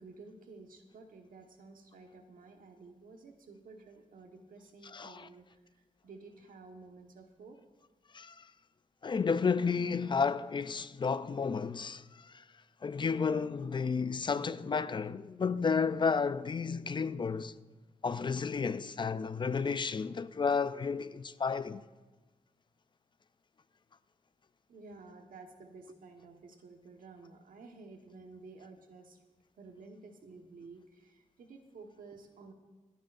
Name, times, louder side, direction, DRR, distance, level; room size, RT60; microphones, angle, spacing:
voice 1, 0.0-5.6 6.0-7.6 24.7-29.2 29.6-32.5, right 3 dB, 90° right, 1.3 m, -52 dB
voice 2, 4.9-5.3 8.1-8.4 9.0-12.4 12.8-17.5 18.0-21.8, left 5 dB, 35° left, 0.4 m, -32 dB
27.0 x 10.0 x 2.5 m
wide cardioid pair, 130°, 14 cm